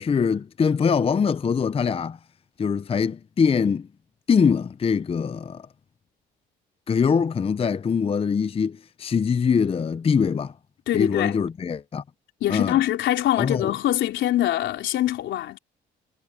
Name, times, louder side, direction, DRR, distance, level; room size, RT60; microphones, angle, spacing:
voice 1, 0.0-2.2 2.6-3.9 4.3-5.7 6.9-10.5 10.9-12.0 12.5-12.8 13.4-13.7, left 6 dB, 30° left, 0.6 m, -23 dB
voice 2, 10.9-11.4 12.4-15.6, left 13 dB, 80° left, 3.6 m, -23 dB
cardioid pair, 80°, 19 cm